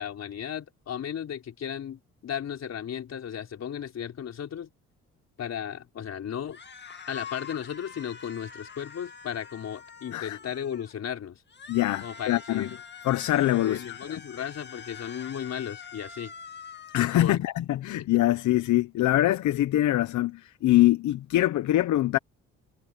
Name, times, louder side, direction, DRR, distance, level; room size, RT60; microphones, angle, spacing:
voice 1, 0.0-4.7 5.4-6.6 7.1-11.4 12.0-12.8 13.6-16.3 17.2-17.4, left 9 dB, 60° left, 4.4 m, -35 dB
sound 1, 6.5-11.0 11.5-17.2, left 6 dB, 35° left, 2.2 m, -45 dB
voice 2, 11.7-12.7 13.0-14.0 16.9-22.2, left 15 dB, 75° left, 0.9 m, -24 dB
cardioid pair, 90°, 30 cm